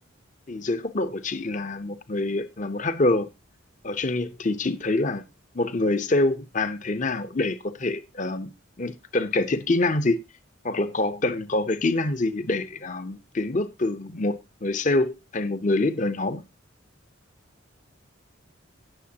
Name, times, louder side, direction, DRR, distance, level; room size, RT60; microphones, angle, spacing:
voice 1, 0.5-3.3 3.8-5.2 5.5-8.5 8.8-10.2 10.6-16.4, left 2 dB, 35° left, 0.7 m, -26 dB
18.0 x 6.8 x 2.9 m
head